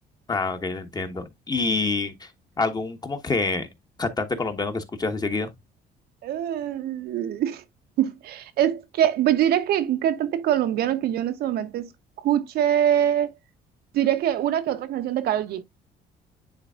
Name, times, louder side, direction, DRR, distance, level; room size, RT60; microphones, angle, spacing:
voice 1, 0.3-2.3 2.6-3.7 4.0-5.5, left 3 dB, 25° left, 1.3 m, -27 dB
voice 2, 6.2-7.6 8.0-11.9 12.2-13.3 13.9-15.6, right 11 dB, 70° right, 0.8 m, -24 dB
9.8 x 4.1 x 2.4 m
cardioid pair, 110°, 17 cm